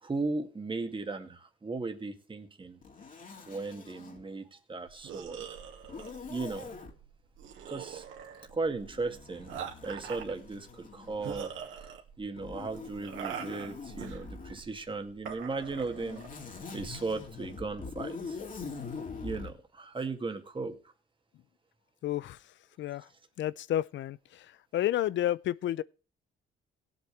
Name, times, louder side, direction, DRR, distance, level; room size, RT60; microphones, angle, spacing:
voice 1, 0.0-2.8 3.5-5.5 6.3-6.8 7.7-8.1 8.5-9.5 9.8-11.5 12.2-18.4 19.2-20.8, right 3 dB, 25° right, 2.1 m, -36 dB
Zipper (clothing), 2.8-4.2 5.8-6.9 8.3-11.6 12.4-14.6 15.6-19.5, left 4 dB, 45° left, 2.9 m, -44 dB
sound 1, 4.9-18.0, right 8 dB, 80° right, 2.3 m, -44 dB
voice 2, 22.0-22.4 22.8-23.1 23.4-24.5 24.7-25.8, left 12 dB, 70° left, 0.6 m, -30 dB
18.0 x 8.2 x 3.4 m
cardioid pair, 90°, 20 cm